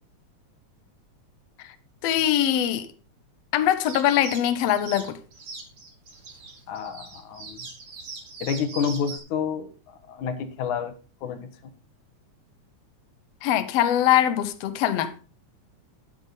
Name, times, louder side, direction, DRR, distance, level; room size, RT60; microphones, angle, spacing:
voice 1, 2.0-2.9 3.5-5.2 13.4-15.1, left 11 dB, 65° left, 1.9 m, -22 dB
sound 1, 3.8-9.2, right 4 dB, 50° right, 3.2 m, -41 dB
voice 2, 6.7-7.7 8.4-9.7 10.1-10.9 11.2-11.4, left 7 dB, 85° left, 2.8 m, -29 dB
12.0 x 9.2 x 4.0 m
omnidirectional pair, 3.4 m